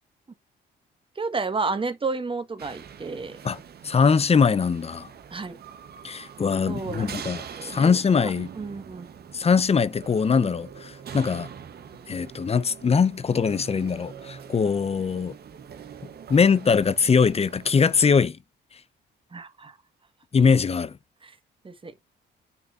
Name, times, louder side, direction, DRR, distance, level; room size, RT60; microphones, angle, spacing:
voice 1, 1.1-3.4 5.3-5.6 6.6-7.2 7.6-8.3 8.6-9.1 19.3-19.7 21.2-21.3 21.6-21.9, right 4 dB, 25° right, 1.6 m, -31 dB
sound 1, 2.6-18.0, right 7 dB, 55° right, 1.2 m, -43 dB
voice 2, 3.4-5.1 6.0-8.5 9.3-11.5 12.1-15.3 16.3-18.4 20.3-21.0, left 5 dB, 30° left, 0.8 m, -22 dB
9.8 x 3.6 x 2.6 m
cardioid pair, 90°, 20 cm